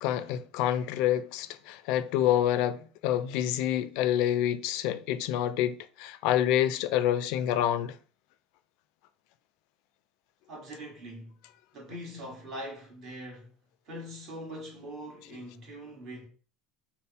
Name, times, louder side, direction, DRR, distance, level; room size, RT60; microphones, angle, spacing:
voice 1, 0.0-7.9, left 11 dB, 65° left, 0.3 m, -27 dB
voice 2, 10.5-11.3 11.7-13.5 13.8-16.3, equal, 40° right, 1.5 m, -42 dB
3.3 x 2.0 x 4.1 m
cardioid pair, 155°, 0 cm